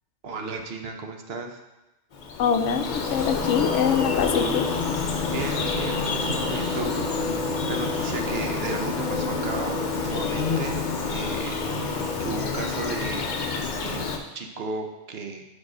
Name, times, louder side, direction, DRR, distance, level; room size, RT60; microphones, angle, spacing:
voice 1, 0.2-1.6 5.3-10.8 11.1-11.6 11.9-13.3 13.8-14.1 14.3-15.5, right 3 dB, 60° right, 4 dB, 0.9 m, -34 dB
Bird vocalization bird call bird song, 2.1-14.2, left 4 dB, 45° left, 0.7 m, -27 dB
voice 2, 2.4-4.7, left 7 dB, 75° left, 8 dB, 0.9 m, -24 dB
4.9 x 4.7 x 6.0 m, 1.0 s
omnidirectional pair, 1.3 m